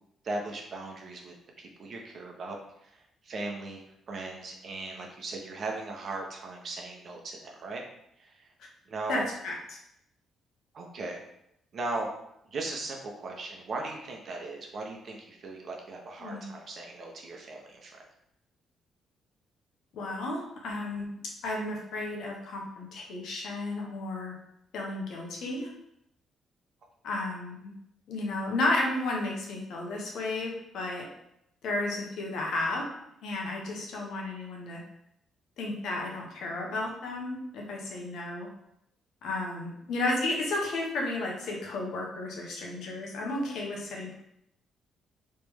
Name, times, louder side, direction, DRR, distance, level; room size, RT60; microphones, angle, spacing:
voice 1, 0.2-7.8 8.2-8.5 8.9-9.3 10.7-11.2 11.7-12.1 12.4-18.0, right 2 dB, 50° right, 1 dB, 0.8 m, -38 dB
voice 2, 9.1-9.8 16.2-16.4 19.9-21.1 21.4-24.3 24.7-25.7 27.0-27.7 28.1-31.0 31.6-32.8 33.2-34.8 35.6-38.5 39.2-44.1, left 2 dB, 75° left, -1 dB, 1.0 m, -33 dB
3.3 x 3.1 x 3.4 m, 0.79 s
cardioid pair, 90°, 0 cm